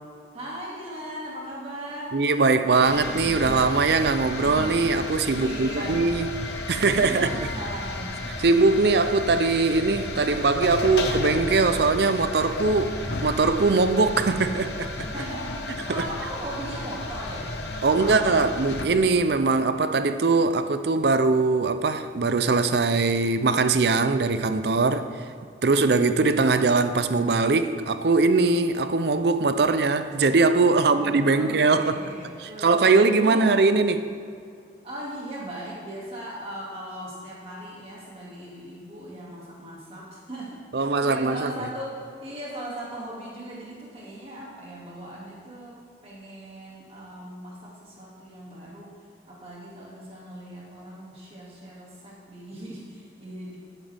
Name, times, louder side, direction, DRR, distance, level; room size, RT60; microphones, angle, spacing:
voice 1, 0.3-2.2 5.3-6.1 7.0-8.4 15.1-17.5 17.8-18.5 30.7-32.8 33.2-33.5 34.8-48.9 49.3-53.6, right 1 dB, 30° right, 2.3 m, -38 dB
voice 2, 2.1-6.4 6.7-7.3 8.4-14.9 15.9-16.0 17.8-25.1 25.6-32.0 32.4-34.1 40.7-41.5, right 3 dB, 65° right, 0.5 m, -21 dB
sound 1, 2.8-18.9, left 2 dB, 70° left, 1.0 m, -33 dB
12.5 x 9.1 x 3.5 m
head